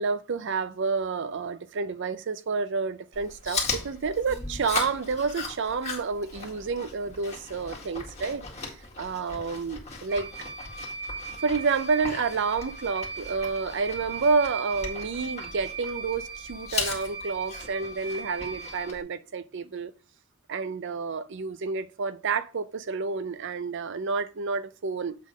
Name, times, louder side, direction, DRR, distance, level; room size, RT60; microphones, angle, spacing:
voice 1, 0.0-10.5 11.4-19.9 20.5-25.2, right 4 dB, 60° right, 0.5 m, -29 dB
Chewing mastication, 3.1-19.0, left 4 dB, 35° left, 1.9 m, -38 dB
sound 1, 10.1-18.9, right 5 dB, 10° right, 1.2 m, -39 dB
7.6 x 3.6 x 5.0 m
head